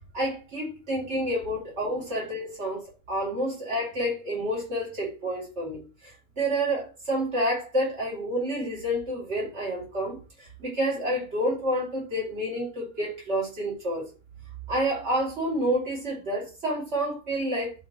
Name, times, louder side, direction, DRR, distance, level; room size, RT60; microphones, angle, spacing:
voice 1, 0.1-14.1 14.7-17.7, equal, 50° right, 3.3 m, -29 dB
11.0 x 4.5 x 3.1 m
omnidirectional pair, 1.5 m